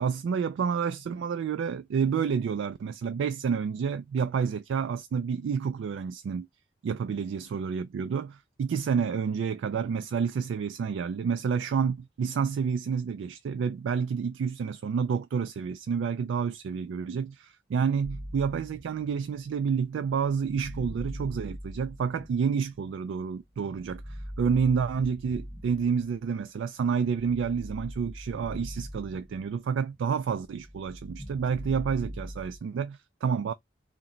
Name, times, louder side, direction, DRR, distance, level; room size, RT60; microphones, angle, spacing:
voice 1, 0.0-6.5 6.8-33.5, right 6 dB, 90° right, 0.3 m, -29 dB
sound 1, 18.0-23.1 23.7-26.3 26.8-29.7 29.9-32.6, equal, 5° left, 1.4 m, -42 dB
2.8 x 2.2 x 3.7 m
head